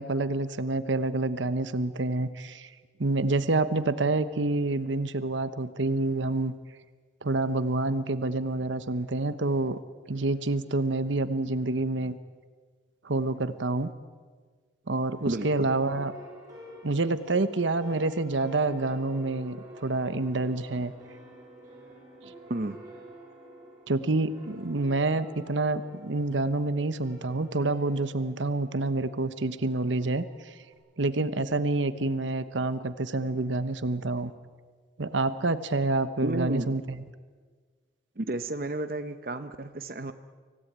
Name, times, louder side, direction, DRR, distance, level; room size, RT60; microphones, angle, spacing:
voice 1, 0.0-2.7 3.0-6.5 7.2-9.8 10.1-12.2 13.0-13.9 14.9-16.1 16.8-20.9 23.9-30.5 31.0-34.3 35.0-37.0, right 2 dB, 85° right, 12 dB, 1.0 m, -28 dB
sound 1, 15.1-30.7, equal, 20° right, 7.5 m, -49 dB
voice 2, 15.3-15.7 22.5-22.8 36.2-36.7 38.2-40.1, right 2 dB, 50° right, 9 dB, 0.9 m, -32 dB
25.0 x 17.0 x 8.9 m, 1.5 s
head